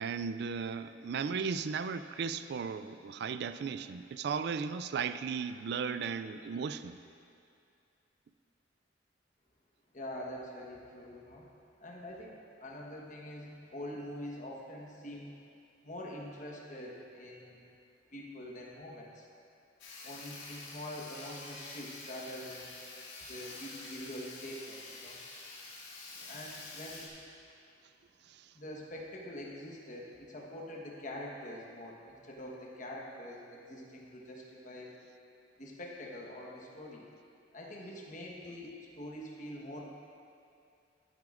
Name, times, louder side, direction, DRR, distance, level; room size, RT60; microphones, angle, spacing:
voice 1, 0.0-7.0 26.2-26.3 28.3-28.5, right 6 dB, 60° right, 12 dB, 0.3 m, -36 dB
voice 2, 9.9-11.4 11.8-15.3 15.8-17.6 18.1-19.3 20.0-22.7 23.3-25.2 26.3-27.1 28.5-34.9 35.6-37.1 37.5-39.9, left 1 dB, 40° left, -2 dB, 1.3 m, -45 dB
Sawing, 19.8-27.1, left 3 dB, 75° left, 2.0 m, -47 dB
13.5 x 9.3 x 2.5 m, 2.4 s
head